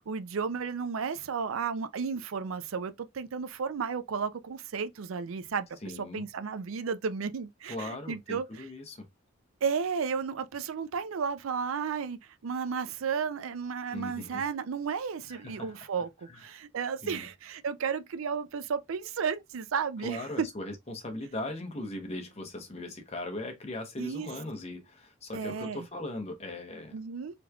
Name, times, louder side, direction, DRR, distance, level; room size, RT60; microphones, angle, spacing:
voice 1, 0.1-5.7 6.0-8.7 9.6-20.5 24.0-24.3 25.3-25.9 26.9-27.3, right 6 dB, 90° right, 0.4 m, -33 dB
voice 2, 5.8-6.3 7.7-9.1 13.9-14.4 15.3-15.8 16.3-16.4 17.0-17.3 20.0-27.0, left 2 dB, 30° left, 0.8 m, -39 dB
3.4 x 3.1 x 2.3 m
head